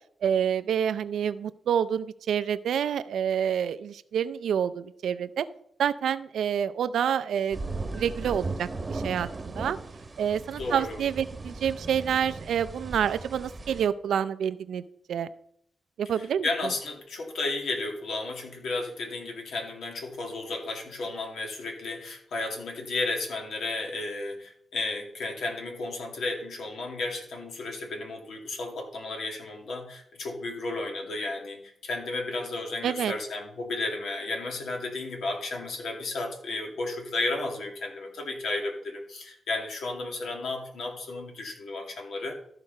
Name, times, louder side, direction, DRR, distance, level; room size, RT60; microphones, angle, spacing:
voice 1, 0.2-5.5 5.8-7.6 7.9-9.8 10.2-14.8 15.1-15.3 16.0-16.5 32.8-33.1, right 8 dB, 80° right, 14 dB, 0.5 m, -28 dB
sound 1, 7.5-13.9, right 3 dB, 25° right, 1.1 m, -37 dB
voice 2, 10.6-11.0 16.1-42.4, left 2 dB, 75° left, 2 dB, 2.3 m, -33 dB
13.5 x 4.9 x 5.4 m, 0.69 s
cardioid pair, 105°, 0 cm